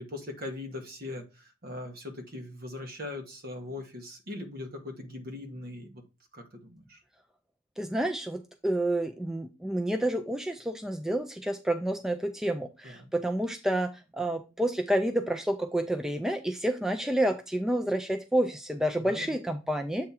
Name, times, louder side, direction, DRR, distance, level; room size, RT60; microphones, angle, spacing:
voice 1, 0.0-6.0 6.3-7.0 12.8-13.1 19.0-19.4, left 2 dB, 50° right, 3 dB, 1.3 m, -40 dB
voice 2, 7.8-20.1, right 1 dB, ahead, 6 dB, 0.3 m, -29 dB
7.6 x 3.6 x 4.2 m, 0.30 s
head